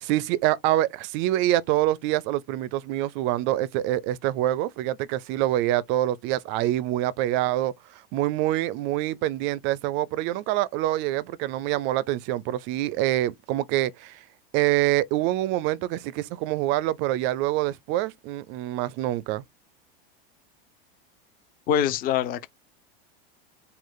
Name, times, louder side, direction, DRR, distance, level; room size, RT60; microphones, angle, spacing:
voice 1, 0.0-14.2 14.5-19.4, right 14 dB, 40° right, 0.4 m, -26 dB
voice 2, 21.7-22.5, left 9 dB, 30° left, 0.6 m, -24 dB
5.1 x 2.3 x 3.8 m
supercardioid pair, 145°, 29 cm